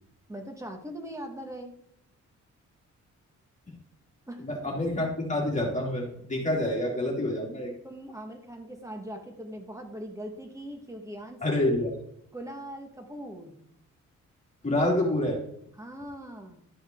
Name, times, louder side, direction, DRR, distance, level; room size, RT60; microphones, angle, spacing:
voice 1, 0.3-1.7 4.3-4.5 7.8-11.6 12.3-13.6 15.8-16.6, equal, 10° right, 3 dB, 2.1 m, -41 dB
voice 2, 4.4-7.7 11.4-11.9 14.6-15.4, left 1 dB, 25° left, -2 dB, 3.2 m, -27 dB
12.5 x 6.0 x 4.0 m, 0.74 s
cardioid pair, 95°, 31 cm